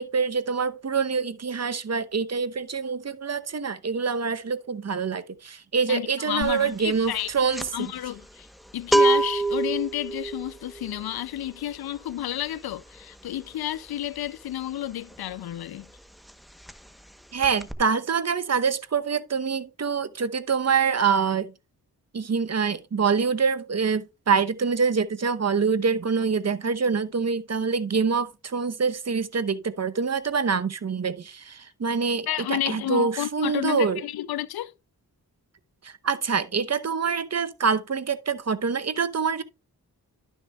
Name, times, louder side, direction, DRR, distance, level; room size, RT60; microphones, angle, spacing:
voice 1, 0.0-7.9 17.3-21.5 22.1-34.0 35.8-39.4, right 5 dB, 45° right, 0.8 m, -25 dB
voice 2, 5.9-7.3 7.7-8.5 8.7-15.9 32.3-34.7, left 12 dB, 80° left, 0.5 m, -31 dB
sound 1, 6.4-6.7 6.9-15.5 15.8-16.0 16.3-17.1 17.4-17.7, right 2 dB, ahead, 0.9 m, -27 dB
11.5 x 6.5 x 2.3 m
cardioid pair, 50°, 37 cm